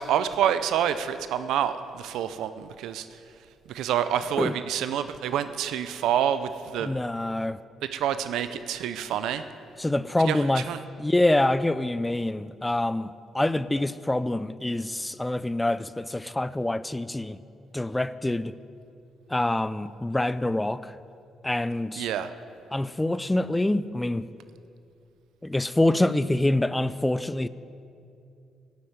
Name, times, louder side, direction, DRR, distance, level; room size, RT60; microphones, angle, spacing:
voice 1, 0.0-3.2 3.7-6.9 7.9-9.4 10.2-10.8 22.0-22.3, right 9 dB, 85° right, 0.5 m, -27 dB
voice 2, 6.8-7.6 9.8-10.6 11.0-13.1 13.3-17.4 17.7-18.5 19.3-20.9 21.4-22.1 22.7-24.3 25.4-27.5, left 1 dB, 10° left, 0.3 m, -25 dB
10.5 x 7.7 x 8.8 m
cardioid pair, 90°, 0 cm